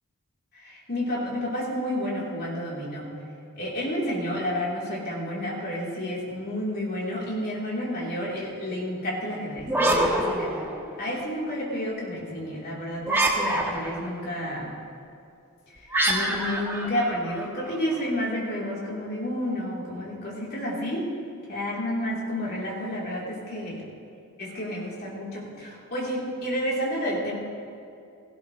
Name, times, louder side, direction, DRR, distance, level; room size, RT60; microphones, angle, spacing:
voice 1, 0.6-3.1 3.6-10.5 11.0-14.7 15.8-21.0 21.5-23.8 24.4-27.3, equal, 45° left, -5 dB, 3.7 m, -30 dB
sound 1, 9.6-11.2 13.0-14.1 15.9-17.8, right 1 dB, 10° right, 1.3 m, -26 dB
18.0 x 15.5 x 3.3 m, 2.6 s
head